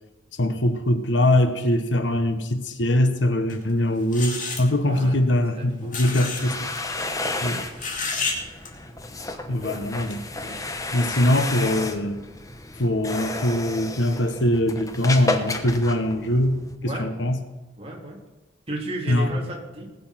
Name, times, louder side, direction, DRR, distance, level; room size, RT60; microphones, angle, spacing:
voice 1, 0.4-6.7 7.4-7.6 9.5-10.6 10.9-12.2 12.8-17.4 19.1-19.4, left 1 dB, 80° left, 9 dB, 1.2 m, -22 dB
sound 1, 3.5-3.6 4.1-4.6 5.9-6.4 6.7-6.8 7.8-8.4 8.7-8.8, left 4 dB, 45° left, 2.4 m, -29 dB
voice 2, 4.8-5.2 5.6-6.0 7.2-7.5 9.4-10.0 16.8-17.1 17.8-18.2 18.7-19.9, right 1 dB, 35° right, -2 dB, 3.2 m, -35 dB
sound 2, 6.1-16.7, left 2 dB, 20° left, 1.0 m, -32 dB
20.0 x 7.0 x 5.8 m, 1.1 s
head